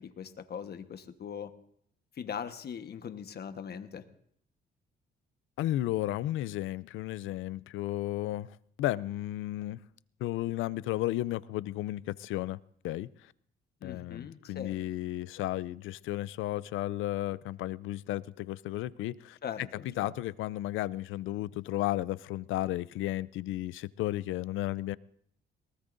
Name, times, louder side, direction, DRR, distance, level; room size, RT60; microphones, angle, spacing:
voice 1, 0.0-1.5 2.1-4.0 13.8-14.8 19.4-20.1, left 7 dB, 55° left, 1.3 m, -40 dB
voice 2, 5.6-8.5 8.8-9.8 10.2-12.6 12.8-13.1 13.8-19.4 19.8-25.0, left 15 dB, 85° left, 0.5 m, -33 dB
22.0 x 19.0 x 2.6 m
cardioid pair, 90°, 20 cm